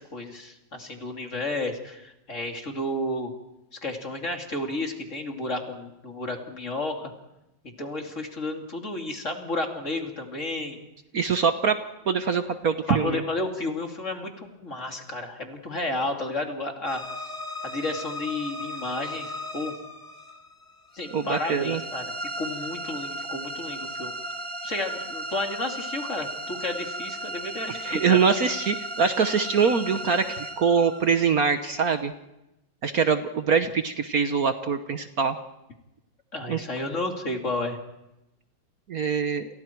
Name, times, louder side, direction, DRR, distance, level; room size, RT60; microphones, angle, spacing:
voice 1, 0.0-3.3 3.8-7.1 7.6-10.8 12.9-17.0 17.6-19.7 20.9-24.1 24.6-28.2 36.3-37.8, left 2 dB, 40° left, 2 dB, 3.2 m, -32 dB
voice 2, 11.1-11.8 12.1-13.2 21.1-21.8 27.7-32.1 32.8-35.4 36.5-36.6 38.9-39.5, right 6 dB, 55° right, 8 dB, 1.3 m, -24 dB
sound 1, 16.9-31.9, right 1 dB, 10° left, 2.7 m, -36 dB
29.5 x 28.5 x 4.6 m, 0.91 s
omnidirectional pair, 2.1 m